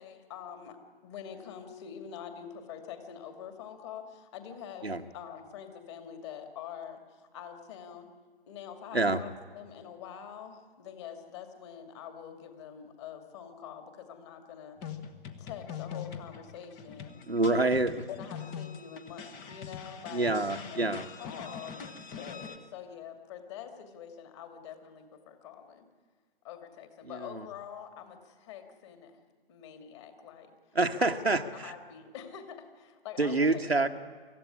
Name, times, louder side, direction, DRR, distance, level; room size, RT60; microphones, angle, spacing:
voice 1, 0.0-4.9 5.1-8.1 8.5-14.8 15.4-17.2 18.1-25.9 26.4-29.2 29.5-30.6 31.0-31.1 31.5-33.6, left 8 dB, 30° left, 6 dB, 2.5 m, -45 dB
sound 1, 14.8-22.6, left 7 dB, 15° left, 0.8 m, -43 dB
voice 2, 17.3-18.1 20.1-21.1 27.0-27.5 30.7-31.7 33.2-33.9, right 2 dB, 85° right, 5 dB, 1.4 m, -27 dB
24.5 x 14.5 x 9.7 m, 1.5 s
figure-of-eight pair, 135°, 30 cm